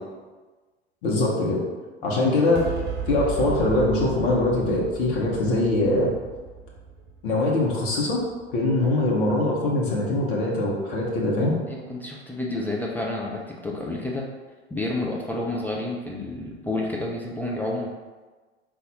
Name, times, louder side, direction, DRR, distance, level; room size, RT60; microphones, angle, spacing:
voice 1, 1.0-1.6 2.0-2.7 3.1-6.1 7.2-8.2 8.5-11.5, left 2 dB, 55° left, -3 dB, 1.0 m, -22 dB
sound 1, 2.5-9.2, right 6 dB, 35° right, 1.1 m, -35 dB
voice 2, 11.7-14.3 14.7-17.9, left 2 dB, 5° left, -3 dB, 0.4 m, -30 dB
4.0 x 2.5 x 4.0 m, 1.3 s
figure-of-eight pair, 75°, 32 cm